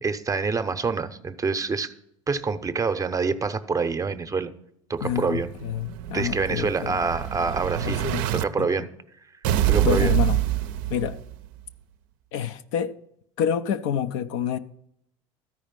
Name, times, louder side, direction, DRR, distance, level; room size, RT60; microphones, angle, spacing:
voice 1, 0.0-1.9 2.3-4.5 4.9-5.5 6.1-8.0 8.3-8.9 9.7-10.2, right 4 dB, 20° right, 0.8 m, -26 dB
voice 2, 5.0-7.0 7.8-8.2 8.6-8.7 9.8-10.4 10.9-11.2 12.3-12.9 13.4-14.6, left 9 dB, 60° left, 0.6 m, -27 dB
Explosion, 5.1-8.4 9.4-11.5, right 13 dB, 55° right, 0.6 m, -26 dB
13.5 x 5.0 x 7.4 m
figure-of-eight pair, 70°, 17 cm